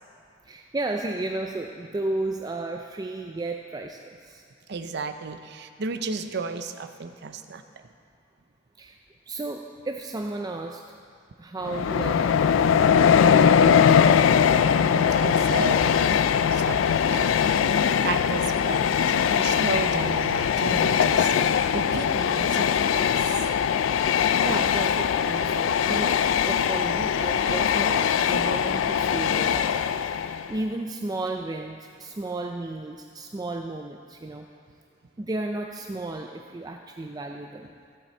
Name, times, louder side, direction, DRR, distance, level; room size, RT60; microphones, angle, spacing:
voice 1, 0.5-4.4 8.8-9.0 9.3-10.9 11.4-13.0 13.3-14.1 18.6-18.9 24.1-29.8 30.1-34.5 35.2-37.7, right 2 dB, 20° right, 3 dB, 0.4 m, -34 dB
voice 2, 4.7-7.6 14.7-15.9 16.5-17.4 18.0-18.8 19.1-23.4, right 4 dB, 60° right, 8 dB, 0.6 m, -33 dB
Train, 11.6-30.6, left 7 dB, 90° left, 0.3 m, -21 dB
16.0 x 7.6 x 4.4 m, 2.4 s
head